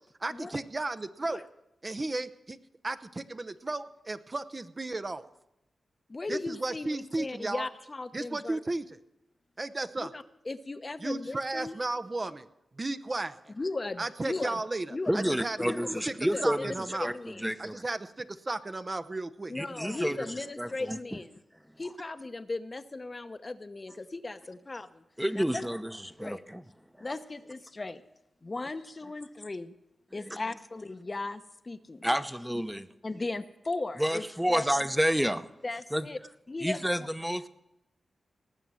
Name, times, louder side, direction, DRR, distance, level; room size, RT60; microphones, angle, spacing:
voice 1, 0.2-1.4 1.8-2.6 2.8-5.3 6.3-7.7 8.1-9.0 9.6-10.1 11.0-12.5 12.7-13.5 14.0-14.9 15.1-15.6 16.1-16.2 16.4-17.1 17.6-19.5, right 2 dB, 40° right, 0.8 m, -34 dB
voice 2, 6.1-8.6 10.0-11.7 13.5-14.6 14.9-15.1 15.6-15.8 16.2-17.4 19.5-21.4 21.8-25.0 25.3-25.7 26.2-26.4 27.0-28.0 28.4-29.7 30.1-32.0 33.0-34.6 35.6-36.2 36.5-36.8, left 2 dB, 40° left, 0.8 m, -37 dB
voice 3, 15.1-16.7 17.0-17.8 19.5-20.2 20.6-21.0 25.2-26.6 27.0-27.1 30.2-30.4 32.0-32.9 34.0-35.5 35.9-36.1 36.6-37.5, equal, 5° right, 0.9 m, -29 dB
18.5 x 6.9 x 7.6 m
cardioid pair, 45°, 0 cm